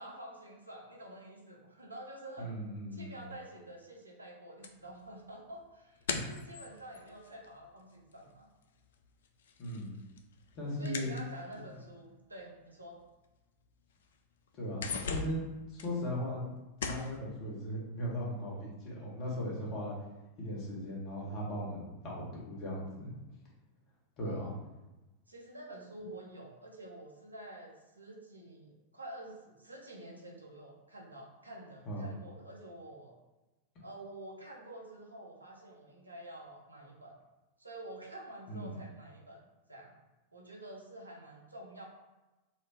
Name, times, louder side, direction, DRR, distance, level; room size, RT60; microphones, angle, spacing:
voice 1, 0.0-2.6 2.9-8.5 10.8-13.0 24.2-24.5 25.3-33.1 33.8-37.1 37.6-39.4 39.7-40.0 40.3-41.8, right 1 dB, 80° right, -1 dB, 0.7 m, -49 dB
voice 2, 2.4-3.2 6.1-6.2 9.6-10.0 10.5-11.2 14.5-15.4 15.7-16.4 16.8-19.9 20.4-23.1 24.2-24.6 26.0-26.1 31.9-32.1 38.5-38.7, equal, 40° left, -4 dB, 1.4 m, -38 dB
sound 1, 4.6-8.3 8.6-11.8 12.6-12.7 13.1-13.2 13.6-14.2 14.5-16.5 16.8-17.2, left 5 dB, 60° left, 0.4 m, -41 dB
4.3 x 2.5 x 2.9 m, 1.1 s
figure-of-eight pair, 90°, 0 cm